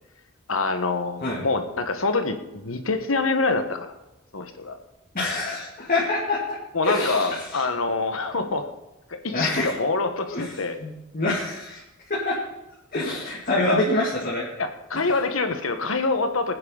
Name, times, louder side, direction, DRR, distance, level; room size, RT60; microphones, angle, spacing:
voice 1, 0.5-3.9 4.3-4.8 6.7-8.7 9.2-10.8 13.5-13.8 14.6-16.5, left 3 dB, 85° left, 7 dB, 1.5 m, -25 dB
voice 2, 5.1-6.6 6.8-7.6 9.3-9.7 10.3-11.8 12.1-12.4 12.9-14.5, left 2 dB, 45° left, -5 dB, 2.5 m, -26 dB
20.5 x 9.6 x 4.1 m, 0.95 s
head